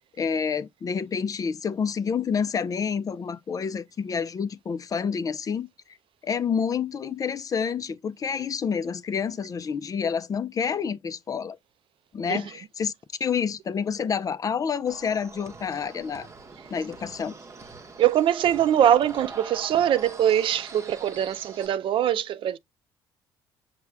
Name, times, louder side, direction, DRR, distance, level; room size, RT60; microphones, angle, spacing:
voice 1, 0.2-5.7 6.2-11.6 12.1-12.9 13.2-16.3 16.7-17.3, left 6 dB, 35° left, 0.4 m, -28 dB
sound 1, 14.9-21.7, right 4 dB, 30° right, 0.8 m, -43 dB
voice 2, 18.0-22.6, right 10 dB, 55° right, 0.4 m, -22 dB
5.8 x 2.2 x 3.3 m
supercardioid pair, 75°, 10 cm